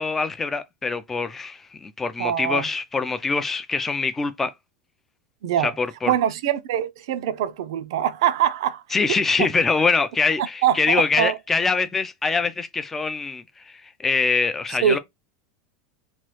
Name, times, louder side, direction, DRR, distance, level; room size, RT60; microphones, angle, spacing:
voice 1, 0.0-4.5 5.6-6.1 8.9-13.7 14.0-15.0, left 4 dB, 10° left, 0.3 m, -24 dB
voice 2, 2.2-2.7 5.4-5.7 6.1-8.8 9.4-9.5 10.4-11.4 14.8-15.0, right 10 dB, 70° right, 0.4 m, -23 dB
3.0 x 2.3 x 3.0 m
supercardioid pair, 170°, 3 cm